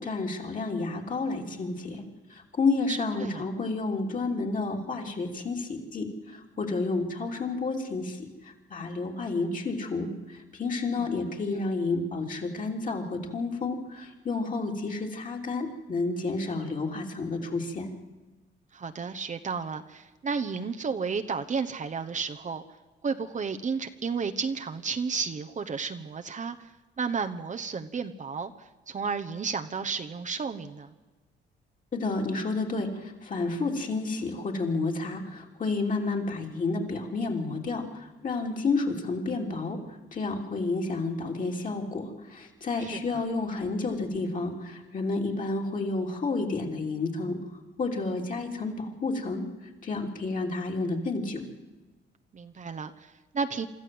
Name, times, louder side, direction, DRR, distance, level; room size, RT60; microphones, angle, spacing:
voice 1, 0.0-2.0 2.3-17.9 31.9-47.4 47.8-49.5 49.8-51.4, left 3 dB, 40° left, 1 dB, 3.4 m, -30 dB
voice 2, 2.9-3.4 10.8-11.1 18.7-22.6 23.0-26.7 27.0-30.9 42.8-43.2 52.3-53.7, right 5 dB, 40° right, 7 dB, 1.1 m, -32 dB
25.0 x 13.5 x 7.9 m, 1.2 s
cardioid pair, 90°, 20 cm